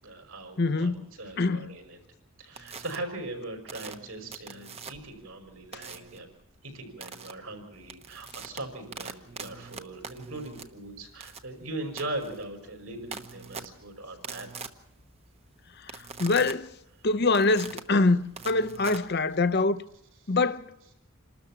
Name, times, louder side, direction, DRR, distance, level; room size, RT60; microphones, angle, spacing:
voice 1, 0.0-2.0 2.4-6.3 6.6-14.5 20.2-20.4, right 2 dB, 70° right, 5.6 m, -40 dB
voice 2, 0.6-1.1 1.4-1.7 16.2-16.7 17.0-19.8 20.3-20.7, left 3 dB, 45° left, 0.7 m, -24 dB
sound 1, 2.6-3.0 3.7-5.2 5.7-6.2 7.0-7.3 7.7-19.6, right 5 dB, 30° right, 1.0 m, -43 dB
27.5 x 13.0 x 7.3 m
head